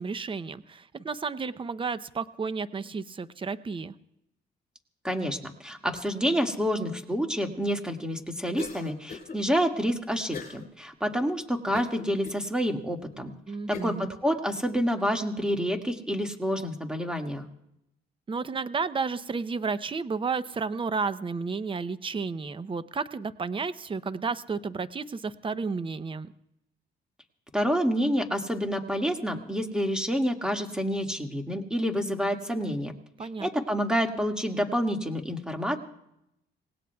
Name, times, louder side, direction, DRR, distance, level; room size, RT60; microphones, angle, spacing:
voice 1, 0.0-3.9 13.5-14.1 18.3-26.3 33.2-33.6, right 5 dB, 25° right, 14 dB, 0.7 m, -32 dB
voice 2, 5.0-13.3 13.7-17.4 27.5-32.9 33.4-35.8, equal, 5° right, 3 dB, 1.9 m, -28 dB
Cough, 8.6-9.4 10.3-10.7 11.1-11.2 11.7-12.4 13.0-13.1 13.7-14.0, left 5 dB, 45° left, 4.1 m, -40 dB
26.5 x 18.5 x 2.3 m, 0.82 s
cardioid pair, 90°, 20 cm